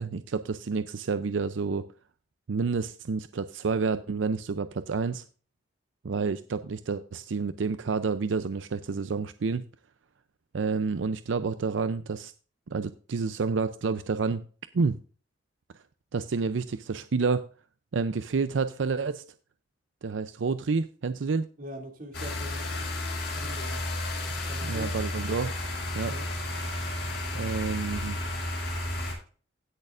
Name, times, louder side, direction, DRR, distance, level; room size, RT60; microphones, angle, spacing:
voice 1, 0.0-1.8 2.5-5.2 6.0-9.6 10.5-12.3 12.7-14.4 14.7-15.0 16.1-17.5 17.9-19.2 20.0-21.5 24.6-25.5 25.9-26.1 27.3-28.2, right 4 dB, 90° right, 0.5 m, -29 dB
voice 2, 21.6-22.6 23.3-23.8 24.5-24.9 26.1-26.3, equal, 50° right, 2.6 m, -41 dB
sound 1, 22.1-29.1, left 1 dB, 65° left, 4.9 m, -32 dB
17.0 x 6.5 x 2.5 m
head